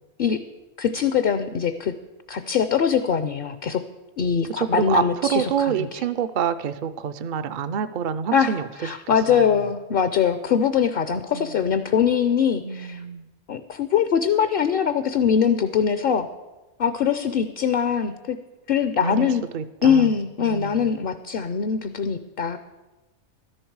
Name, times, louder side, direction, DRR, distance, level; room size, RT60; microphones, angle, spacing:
voice 1, 0.8-1.9 2.3-3.8 4.2-6.0 8.3-8.5 8.8-13.0 13.5-16.3 16.8-18.4 18.7-19.4 19.8-22.6, left 7 dB, 60° left, 11 dB, 0.7 m, -22 dB
voice 2, 4.6-8.7 9.3-9.5 11.3-11.6 12.6-13.3 19.0-20.1 20.4-20.9, right 8 dB, 60° right, 10 dB, 0.5 m, -27 dB
13.0 x 11.0 x 4.7 m, 1.1 s
omnidirectional pair, 1.3 m